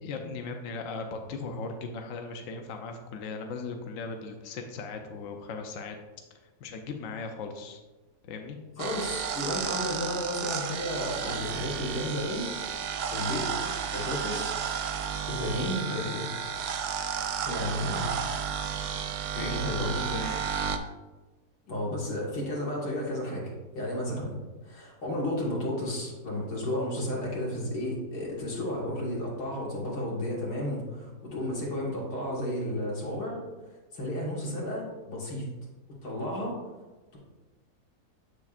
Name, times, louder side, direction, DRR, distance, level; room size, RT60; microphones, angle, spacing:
voice 1, 0.0-6.0 6.6-7.8 8.2-8.6 19.3-20.4, left 4 dB, 65° left, 4 dB, 0.9 m, -37 dB
voice 2, 8.8-13.5 13.9-14.5 15.3-16.3 17.5-18.1 19.4-20.0 21.7-33.4 33.9-35.5 36.0-36.5, left 1 dB, 85° left, -3 dB, 2.2 m, -33 dB
sound 1, 8.8-20.8, right 7 dB, 65° right, 0.8 m, -32 dB
7.0 x 6.4 x 2.4 m, 1.2 s
omnidirectional pair, 1.6 m